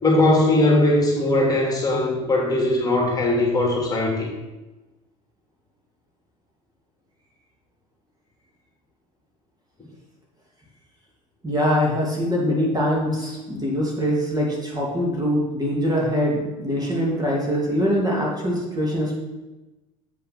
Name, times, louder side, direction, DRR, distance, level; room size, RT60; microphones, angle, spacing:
voice 1, 0.0-4.3, left 1 dB, 20° left, -2 dB, 3.1 m, -20 dB
voice 2, 11.4-19.1, equal, 20° right, -3 dB, 2.8 m, -23 dB
7.9 x 5.6 x 5.9 m, 1.1 s
hypercardioid pair, 80°, 18 cm